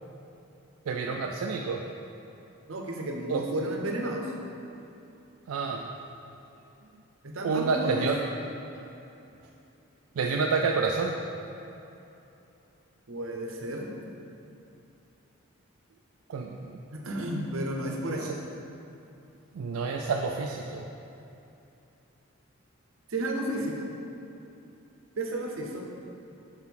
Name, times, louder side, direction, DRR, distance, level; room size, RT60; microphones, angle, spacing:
voice 1, 0.9-1.8 3.3-3.5 5.5-5.8 7.4-8.2 10.2-11.2 16.3-16.8 18.2-18.3 19.5-20.8, right 4 dB, 90° right, 1 dB, 0.4 m, -28 dB
voice 2, 2.7-4.3 7.2-8.1 13.1-13.9 16.9-18.3 23.1-23.9 25.2-25.8, right 1 dB, 70° right, 1 dB, 0.8 m, -32 dB
5.8 x 4.7 x 5.2 m, 2.8 s
head